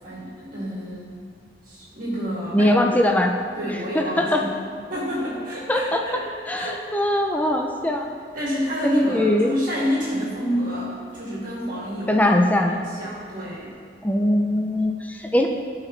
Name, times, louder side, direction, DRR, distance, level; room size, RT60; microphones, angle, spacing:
voice 1, 0.0-1.2 1.6-3.0 3.5-4.6 4.9-6.3 6.5-6.8 8.3-12.3 12.6-13.7, equal, 50° right, -7 dB, 2.1 m, -28 dB
voice 2, 2.5-3.3 3.9-4.4 5.7-6.0 6.5-8.1 8.8-9.5 12.1-12.8 14.0-15.5, left 1 dB, 10° left, 2 dB, 0.4 m, -21 dB
14.0 x 4.9 x 3.2 m, 2.1 s
head